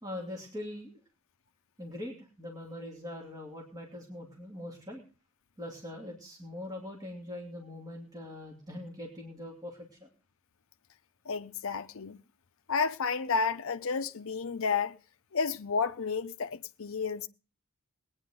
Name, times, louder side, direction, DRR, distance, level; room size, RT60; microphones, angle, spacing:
voice 1, 0.0-1.0 1.8-5.0 5.6-10.1, left 1 dB, 15° right, 2.7 m, -42 dB
voice 2, 11.3-12.2 12.7-14.9 15.3-17.3, left 5 dB, 65° left, 0.7 m, -31 dB
20.5 x 9.7 x 3.7 m
head